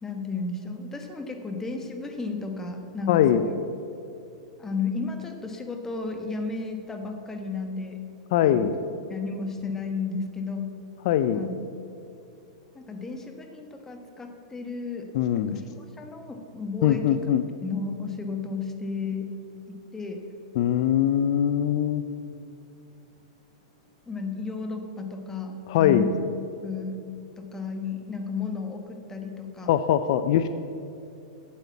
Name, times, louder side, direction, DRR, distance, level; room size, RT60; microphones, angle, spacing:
voice 1, 0.0-3.5 4.6-8.0 8.4-8.7 9.1-10.7 11.3-11.5 12.7-15.1 15.3-17.2 17.6-19.3 19.7-20.2 24.1-26.1 26.6-27.0 27.4-29.7, left 4 dB, 10° left, 4 dB, 1.2 m, -33 dB
voice 2, 3.1-3.4 8.3-8.7 11.0-11.4 15.1-15.6 16.8-17.4 20.6-22.0 25.7-26.1 29.7-30.5, left 10 dB, 55° left, 11 dB, 0.4 m, -22 dB
8.4 x 8.0 x 7.1 m, 2.7 s
hypercardioid pair, 125°, 3 cm